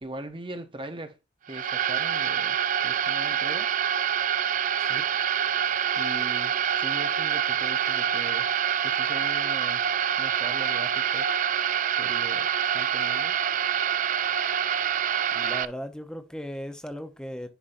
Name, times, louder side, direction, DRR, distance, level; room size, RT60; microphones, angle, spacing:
voice 1, 0.0-1.2 1.5-2.6 2.8-3.7 5.9-8.5 8.8-9.9 10.2-11.4 12.0-12.5 12.7-13.4, right 2 dB, 25° right, 0.8 m, -40 dB
sound 1, 1.5-15.6, right 9 dB, 40° right, 0.3 m, -26 dB
voice 2, 15.3-17.5, equal, 5° left, 0.8 m, -37 dB
10.0 x 5.6 x 2.6 m
head